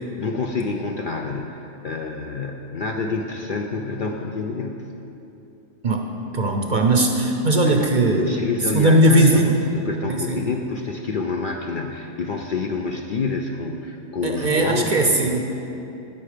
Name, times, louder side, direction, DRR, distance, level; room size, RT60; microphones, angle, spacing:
voice 1, 0.2-4.9 7.7-15.2, left 4 dB, 55° left, 2 dB, 0.6 m, -28 dB
voice 2, 5.8-8.4 8.7-9.6 10.1-10.4 14.2-15.4, right 1 dB, 45° right, 3 dB, 0.7 m, -19 dB
16.0 x 5.6 x 5.0 m, 2.8 s
omnidirectional pair, 1.3 m